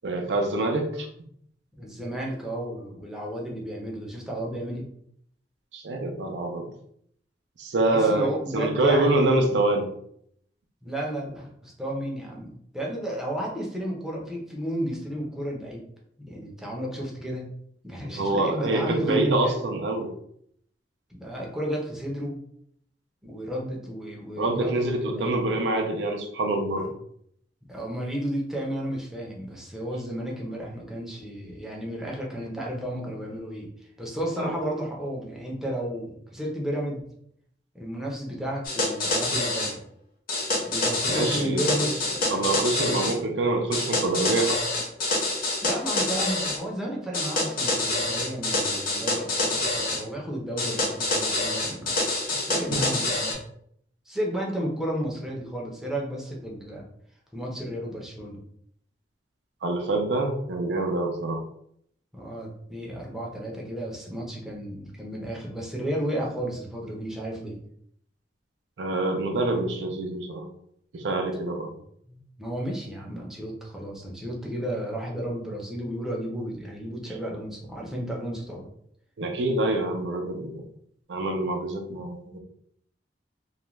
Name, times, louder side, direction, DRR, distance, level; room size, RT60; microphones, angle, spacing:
voice 1, 0.0-1.1 5.7-6.6 7.6-9.9 18.1-20.1 24.4-26.8 34.4-34.5 41.1-41.7 42.3-44.6 59.6-61.4 68.8-70.5 70.9-71.7 79.2-80.6 81.1-82.4, right 2 dB, 80° right, 3 dB, 0.5 m, -26 dB
voice 2, 1.7-4.9 7.9-9.5 10.8-15.9 16.3-17.5 17.8-19.6 21.2-22.4 23.2-25.4 26.7-26.9 27.7-37.0 37.7-39.8 40.7-43.1 45.6-52.0 52.3-53.4 54.1-56.9 57.3-58.4 62.1-67.6 71.7-78.7, equal, 5° right, -3 dB, 0.5 m, -33 dB
sound 1, 38.6-39.7 40.3-43.2 43.7-46.6 47.1-50.0 50.6-53.3, left 2 dB, 55° left, 0.8 m, -27 dB
2.4 x 2.2 x 3.0 m, 0.69 s
head